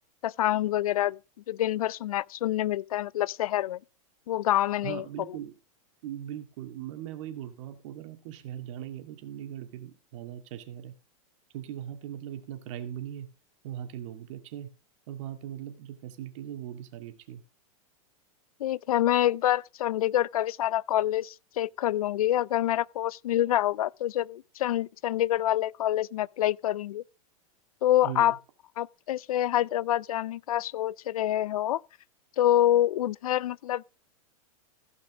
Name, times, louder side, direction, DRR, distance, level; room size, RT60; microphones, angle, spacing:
voice 1, 0.2-1.2 1.5-3.8 4.3-5.0 18.6-27.0 27.8-28.4 28.8-31.8 32.4-33.8, left 13 dB, 85° left, 0.4 m, -26 dB
voice 2, 4.8-5.5 6.0-10.9 11.5-13.3 13.6-14.7 15.1-17.4 28.0-28.4, right 11 dB, 60° right, 2.1 m, -39 dB
16.0 x 5.4 x 5.0 m
hypercardioid pair, 125°, 18 cm